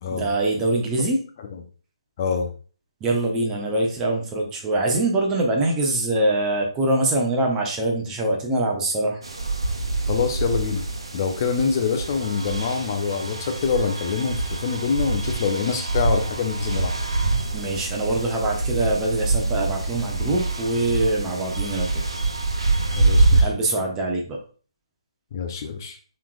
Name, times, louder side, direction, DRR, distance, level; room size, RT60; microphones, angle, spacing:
voice 1, 0.1-1.2 3.0-9.2 17.5-22.0 23.3-24.4, right 2 dB, 15° right, 0 dB, 0.9 m, -24 dB
voice 2, 2.2-2.5 10.1-10.8 11.1-16.9 23.0-23.5 25.3-26.0, left 6 dB, 35° left, 5 dB, 0.5 m, -25 dB
sound 1, 9.2-23.4, right 3 dB, 65° right, 1.0 m, -25 dB
7.0 x 3.2 x 2.3 m, 0.39 s
figure-of-eight pair, 140°, 3 cm